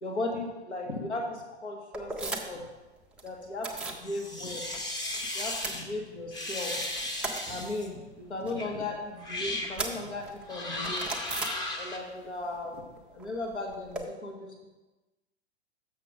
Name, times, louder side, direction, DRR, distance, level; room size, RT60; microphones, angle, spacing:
voice 1, 0.0-2.6 3.2-4.6 5.3-6.8 7.5-11.1 11.8-12.9 13.1-14.7, left 2 dB, 75° left, 0 dB, 1.4 m, -36 dB
sound 1, 1.9-2.7 3.0-4.1 4.4-5.2 5.4-6.5 6.8-12.2 12.4-14.0, right 3 dB, 5° right, 0.4 m, -39 dB
sound 2, 4.0-5.8 6.3-7.9 8.6-8.7 9.2-9.8 10.5-12.0, left 2 dB, 10° left, 0.8 m, -35 dB
6.8 x 6.5 x 5.0 m, 1.1 s
figure-of-eight pair, 105°, 34 cm